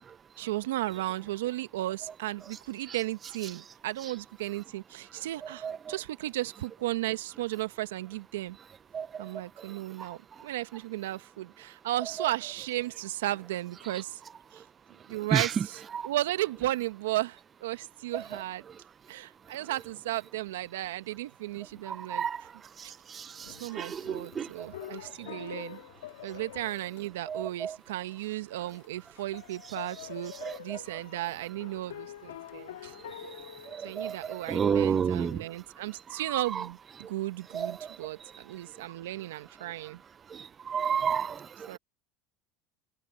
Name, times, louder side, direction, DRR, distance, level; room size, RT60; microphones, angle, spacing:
voice 1, 0.4-8.6 9.2-14.2 14.5-14.6 15.1-18.6 19.1-22.2 22.8-22.9 23.6-25.8 26.2-30.3 30.6-32.9 33.8-40.0 41.7-41.8, right 16 dB, 85° right, 1.2 m, -35 dB
voice 2, 21.9-22.4 23.2-23.3 23.8-24.5 27.3-27.7 30.4-30.5 33.8-34.2 34.5-35.4 37.5-37.7 40.7-41.4, right 7 dB, 35° right, 0.3 m, -29 dB
sound 1, 23.4-27.8 28.1-28.2 28.6-35.2, left 12 dB, 85° left, 2.2 m, -46 dB
hypercardioid pair, 90°, 0 cm